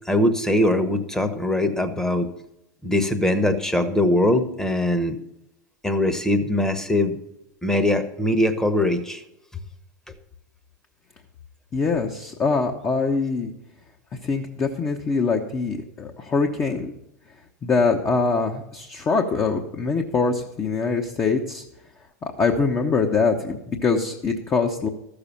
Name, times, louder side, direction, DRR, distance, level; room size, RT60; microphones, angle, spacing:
voice 1, 0.1-2.3 2.8-5.2 5.8-7.2 7.6-9.2, left 1 dB, 5° left, 9 dB, 1.2 m, -21 dB
voice 2, 11.7-13.5 14.2-16.9 17.6-21.6 22.2-24.9, left 4 dB, 25° left, 2 dB, 1.1 m, -23 dB
13.5 x 6.9 x 5.7 m, 0.84 s
hypercardioid pair, 95°, 10 cm